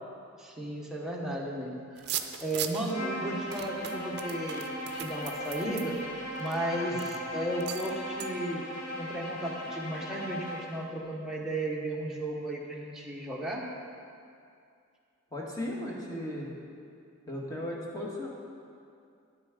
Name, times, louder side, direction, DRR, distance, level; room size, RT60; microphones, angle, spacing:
voice 1, 0.4-2.1 2.4-4.7 5.0-6.0 6.4-8.7 9.0-13.7, right 1 dB, ahead, -3 dB, 1.1 m, -34 dB
sound 1, 2.0-2.9 3.5-6.6 7.0-7.2 7.6-7.9 8.2-8.3, right 10 dB, 50° right, 0.5 m, -38 dB
Bowed string instrument, 2.8-10.8, equal, 85° left, 2.0 m, -38 dB
voice 2, 15.3-16.5 17.2-18.3, left 1 dB, 15° left, -4 dB, 1.6 m, -36 dB
10.0 x 8.1 x 5.1 m, 2.4 s
head